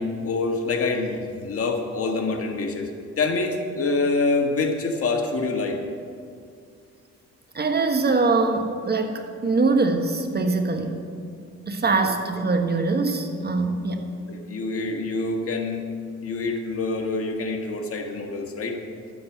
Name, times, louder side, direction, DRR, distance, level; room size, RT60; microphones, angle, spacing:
voice 1, 0.0-2.9 3.2-5.8 14.3-15.8 16.2-18.8, left 3 dB, 50° left, 3 dB, 1.8 m, -26 dB
voice 2, 7.5-11.0 11.7-14.1, right 3 dB, 35° right, 5 dB, 1.2 m, -23 dB
12.0 x 8.3 x 7.2 m, 2.3 s
cardioid pair, 90°, 30 cm